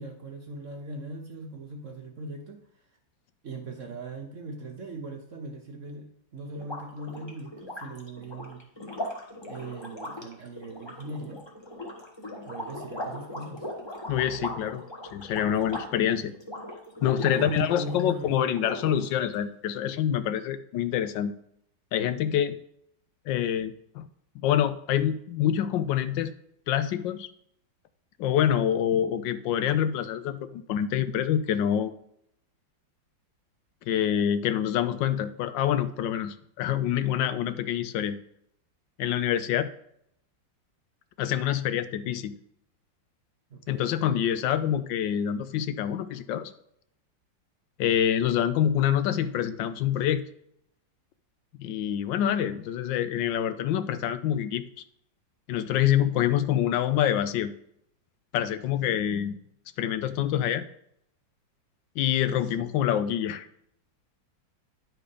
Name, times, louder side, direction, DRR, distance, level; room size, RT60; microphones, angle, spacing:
voice 1, 0.0-2.6 3.4-8.7 9.4-11.4 12.4-13.7 17.2-18.4 43.5-44.0, right 1 dB, 55° right, 4 dB, 1.0 m, -39 dB
sound 1, 6.5-18.2 18.5-19.3, left 1 dB, 15° left, 1.0 m, -39 dB
voice 2, 14.1-14.8 15.1-16.3 17.0-21.3 21.9-22.6 23.3-24.1 24.3-26.3 26.7-27.3 28.2-31.9 33.9-38.2 39.0-39.7 41.2-42.4 43.7-46.5 47.8-50.2 51.6-54.6 55.5-57.5 58.3-59.4 59.8-60.6 62.0-63.5, left 10 dB, 80° left, 11 dB, 1.3 m, -26 dB
10.0 x 4.8 x 5.0 m, 0.71 s
omnidirectional pair, 2.0 m